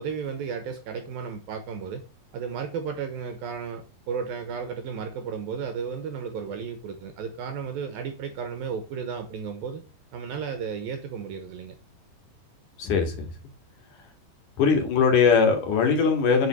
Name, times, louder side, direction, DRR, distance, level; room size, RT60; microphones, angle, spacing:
voice 1, 0.0-2.0 2.3-9.8 10.1-11.8, right 6 dB, 70° right, 2.4 m, -33 dB
voice 2, 12.8-13.3 14.6-16.5, left 5 dB, 55° left, 2.9 m, -21 dB
8.2 x 5.6 x 7.9 m
omnidirectional pair, 5.3 m